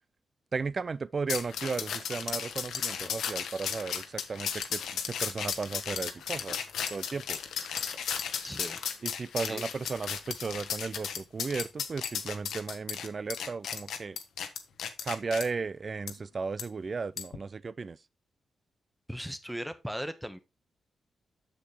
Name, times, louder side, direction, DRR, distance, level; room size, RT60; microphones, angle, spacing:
voice 1, 0.5-6.6 6.9-7.4 9.0-14.2 15.0-18.0, right 4 dB, 50° right, 0.4 m, -35 dB
sound 1, 1.3-15.4 16.1-16.2 16.6-16.7 17.2-17.4, left 8 dB, 85° left, 0.9 m, -35 dB
voice 2, 8.4-8.8 9.4-9.7 19.1-20.4, equal, 5° right, 1.2 m, -38 dB
7.2 x 6.7 x 3.2 m
cardioid pair, 55°, 0 cm